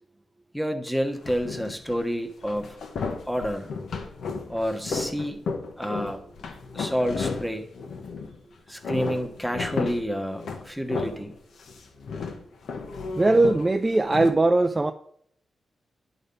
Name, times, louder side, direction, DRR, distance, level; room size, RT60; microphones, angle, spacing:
voice 1, 0.5-2.8 3.3-3.7 4.5-5.4 5.8-6.2 6.7-7.7 8.7-11.3, equal, ahead, 1.1 m, -29 dB
sound 1, 1.2-2.0 2.4-8.4 8.7-11.3 11.6-14.3, left 4 dB, 80° left, 1.1 m, -33 dB
voice 2, 13.1-14.9, right 2 dB, 20° right, 0.4 m, -20 dB
10.5 x 4.1 x 5.3 m
cardioid pair, 100°, 0 cm